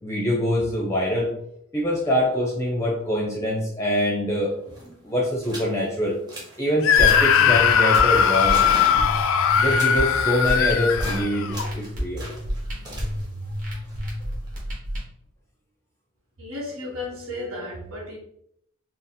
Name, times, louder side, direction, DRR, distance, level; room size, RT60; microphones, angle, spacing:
voice 1, 0.0-1.3 1.7-6.2 6.6-9.1 9.6-12.2, equal, 15° left, -3 dB, 0.6 m, -25 dB
sound 1, 4.4-4.5 4.7-4.9 5.4-5.7 6.1-6.6 6.9-7.4 7.9-11.2 11.5-14.6, right 1 dB, 20° right, 0.9 m, -38 dB
Screaming, 6.8-11.7, left 8 dB, 65° left, 0.3 m, -19 dB
sound 2, 7.0-15.0, equal, 40° right, 1.3 m, -30 dB
voice 2, 16.4-18.2, left 2 dB, 75° right, -4 dB, 1.1 m, -34 dB
4.4 x 2.0 x 3.6 m, 0.73 s
head